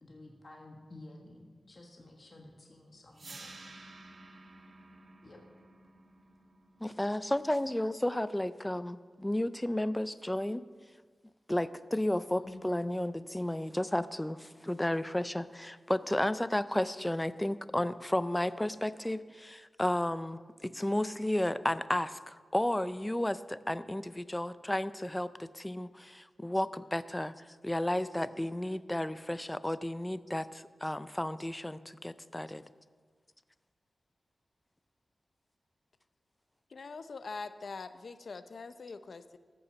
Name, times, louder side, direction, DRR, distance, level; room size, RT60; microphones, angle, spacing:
voice 1, 0.0-3.5 5.2-5.4 12.4-12.7, left 2 dB, 40° left, 1 dB, 1.4 m, -51 dB
sound 1, 3.1-9.2, right 2 dB, 55° right, 1.4 m, -53 dB
voice 2, 6.8-10.6 11.5-27.3 27.6-32.6, left 1 dB, 10° left, 14 dB, 0.4 m, -33 dB
voice 3, 36.7-39.4, left 4 dB, 60° left, 12 dB, 0.6 m, -43 dB
14.0 x 7.0 x 6.9 m, 1.5 s
wide cardioid pair, 145°, 0 cm